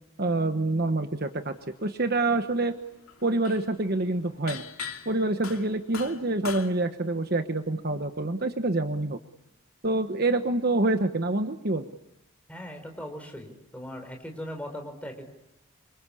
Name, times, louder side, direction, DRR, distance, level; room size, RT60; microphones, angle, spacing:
voice 1, 0.2-1.5 1.8-2.8 3.2-4.6 5.1-9.2 9.8-11.9, right 2 dB, 45° right, 7 dB, 1.2 m, -26 dB
sound 1, 1.6-2.1 2.4-6.7, left 6 dB, 80° left, 2.6 m, -41 dB
voice 2, 12.5-15.2, equal, 5° left, 4 dB, 4.4 m, -39 dB
27.5 x 25.5 x 8.5 m, 0.85 s
head